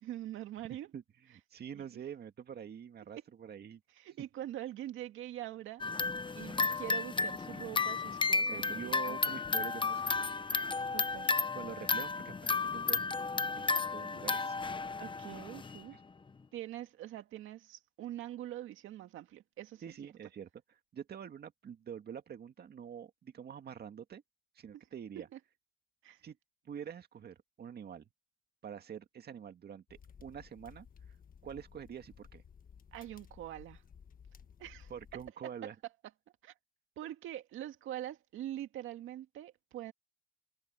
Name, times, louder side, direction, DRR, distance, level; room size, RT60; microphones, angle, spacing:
voice 1, 0.0-0.9 1.7-1.9 4.0-5.8 6.3-9.4 10.5-11.3 15.0-16.0 16.5-19.8 25.2-25.4 26.0-26.2 32.9-33.8 34.6-34.9 36.4-36.5 37.0-39.9, right 13 dB, 85° right, 2.0 m, -44 dB
voice 2, 0.9-3.8 8.5-10.2 11.5-13.0 13.6-14.6 15.9-16.0 19.8-24.2 24.5-25.3 26.2-26.4 26.7-28.1 28.6-30.9 31.4-32.4 34.9-35.7, right 8 dB, 55° right, 2.0 m, -46 dB
sound 1, 5.8-15.8, left 4 dB, 25° left, 0.8 m, -33 dB
sound 2, 29.9-35.3, left 7 dB, 45° left, 1.4 m, -56 dB
cardioid pair, 90°, 20 cm